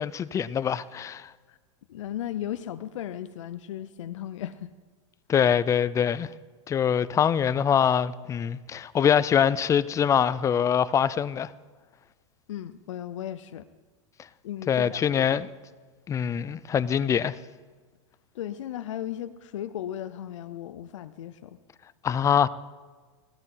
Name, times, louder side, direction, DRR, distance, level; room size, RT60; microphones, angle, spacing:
voice 1, 0.0-1.3 5.3-6.3 6.7-11.5 14.7-15.5 16.1-17.4 22.0-22.5, left 8 dB, 20° left, 0.5 m, -24 dB
voice 2, 1.9-4.7 12.5-13.6 14.4-15.4 18.3-21.6, left 11 dB, 75° left, 0.6 m, -36 dB
17.5 x 13.5 x 3.9 m
hypercardioid pair, 115°, 16 cm